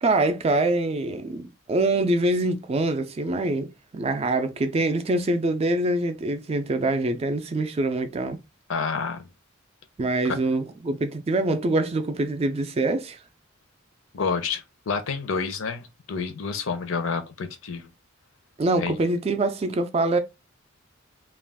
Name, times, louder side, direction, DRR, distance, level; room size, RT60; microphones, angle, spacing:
voice 1, 0.0-8.4 10.0-13.2 18.6-20.2, right 2 dB, 30° right, 0.3 m, -24 dB
voice 2, 8.7-9.3 10.2-10.4 14.1-17.9 18.8-19.0, left 5 dB, 70° left, 0.6 m, -29 dB
2.4 x 2.2 x 3.4 m
head